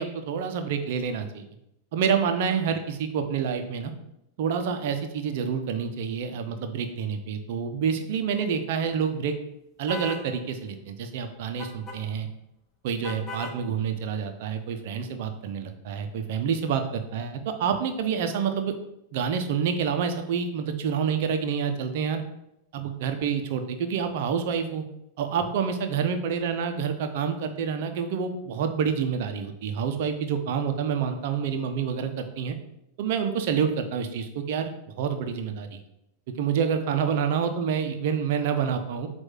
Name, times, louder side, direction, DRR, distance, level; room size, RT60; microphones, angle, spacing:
voice 1, 0.0-1.5 1.9-3.9 4.4-9.4 9.8-12.3 12.8-18.7 19.1-22.2 22.7-24.8 25.2-32.6 33.0-35.8 36.4-39.1, right 7 dB, 50° right, 7 dB, 0.8 m, -28 dB
sound 1, 9.9-10.3 11.6-12.0 13.0-13.6, left 3 dB, 15° left, 1.5 m, -37 dB
7.9 x 2.7 x 5.7 m, 0.82 s
figure-of-eight pair, 90°, 0 cm